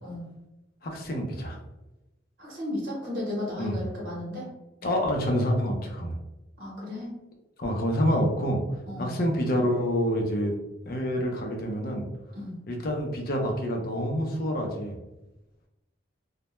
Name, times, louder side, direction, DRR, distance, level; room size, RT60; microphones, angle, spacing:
voice 1, 0.8-1.6 3.6-3.8 4.8-6.2 7.6-8.6 9.0-10.5 10.9-12.0 12.7-15.0, equal, 50° left, 2 dB, 0.5 m, -27 dB
voice 2, 2.4-4.5 6.6-7.1 8.9-9.2 12.3-12.6, left 1 dB, 50° right, -4 dB, 0.9 m, -34 dB
2.1 x 2.1 x 2.9 m, 0.99 s
head